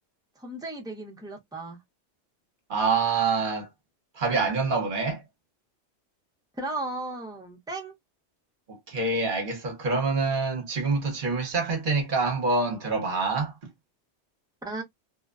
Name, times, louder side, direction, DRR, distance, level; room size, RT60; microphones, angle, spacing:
voice 1, 0.4-1.8 6.6-7.9 14.6-14.8, right 2 dB, 5° right, 0.5 m, -35 dB
voice 2, 2.7-3.7 4.2-5.2 8.7-13.5, right 4 dB, 50° right, 0.9 m, -26 dB
2.4 x 2.1 x 2.4 m
omnidirectional pair, 1.2 m